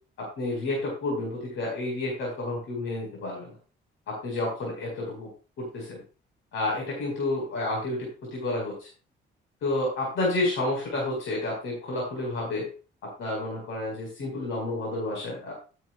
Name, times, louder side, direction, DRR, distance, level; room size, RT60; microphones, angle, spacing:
voice 1, 0.2-3.5 4.1-5.3 5.6-6.0 6.5-8.9 9.6-12.7 13.2-15.5, left 2 dB, 80° left, -2 dB, 5.0 m, -30 dB
14.0 x 9.1 x 2.4 m, 0.35 s
cardioid pair, 90°, 20 cm